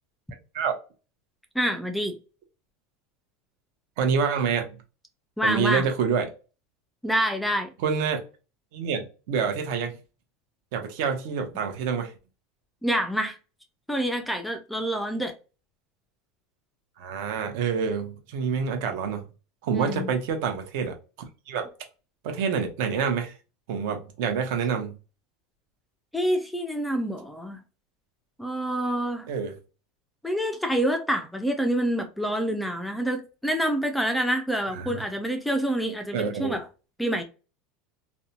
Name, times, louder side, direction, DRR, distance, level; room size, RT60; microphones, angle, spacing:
voice 1, 1.6-2.2 5.4-5.9 7.0-7.7 12.8-13.4 13.9-15.3 19.7-20.1 26.1-27.6 28.4-29.3 30.2-36.6 37.0-37.2, equal, ahead, 0.3 m, -27 dB
voice 2, 4.0-4.7 5.4-6.3 7.8-8.2 8.7-10.0 10.7-12.1 17.0-19.2 19.6-20.9 21.5-21.7 22.2-23.3 23.7-25.0 29.3-29.5 34.7-35.0 36.1-36.6, right 6 dB, 60° right, 0.7 m, -27 dB
2.6 x 2.1 x 2.8 m
supercardioid pair, 155°, 0 cm